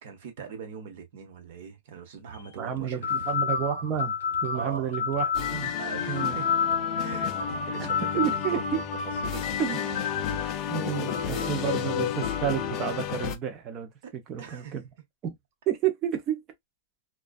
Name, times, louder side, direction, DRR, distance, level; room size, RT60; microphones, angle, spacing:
voice 1, 0.0-3.3 4.5-4.9 5.8-6.5 7.0-8.8 9.2-9.6 10.3-11.7 14.0-14.7, right 7 dB, 50° right, 0.9 m, -42 dB
sound 1, 2.3-2.5 3.0-10.6 11.1-12.7, left 6 dB, 85° left, 0.5 m, -30 dB
sound 2, 2.3-10.4, right 6 dB, 70° right, 0.3 m, -46 dB
voice 2, 2.6-4.2 4.4-5.7 6.1-6.4 7.8-7.9 8.1-8.8 9.6-10.1 10.7-14.8 15.2-15.4 15.7-16.4, right 9 dB, 25° right, 0.6 m, -30 dB
sound 3, 5.3-13.4, left 10 dB, 25° left, 0.3 m, -33 dB
2.5 x 2.3 x 2.2 m
supercardioid pair, 170°, 0 cm